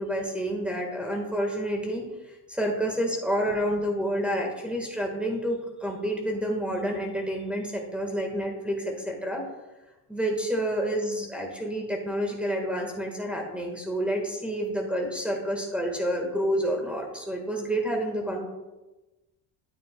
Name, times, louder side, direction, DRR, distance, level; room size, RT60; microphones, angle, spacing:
voice 1, 0.0-9.4 10.1-18.4, equal, 5° right, 0 dB, 1.5 m, -29 dB
9.2 x 9.0 x 2.3 m, 1.1 s
cardioid pair, 105°, 41 cm